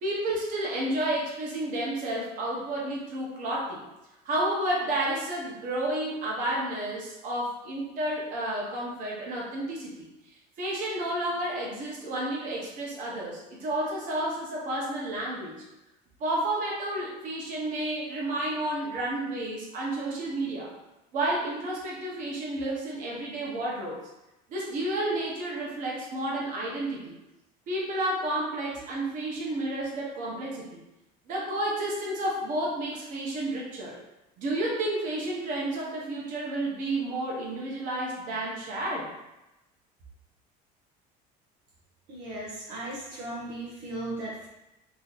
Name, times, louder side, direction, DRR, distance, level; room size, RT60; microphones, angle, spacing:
voice 1, 0.0-3.8 4.2-10.1 10.6-15.6 16.2-20.7 21.1-24.0 24.5-27.1 27.7-30.8 31.3-34.0 34.4-39.1, right 1 dB, 45° right, -4 dB, 1.2 m, -31 dB
voice 2, 42.1-44.5, right 1 dB, 70° right, -5 dB, 0.9 m, -37 dB
3.1 x 2.8 x 4.0 m, 0.96 s
cardioid pair, 155°, 18 cm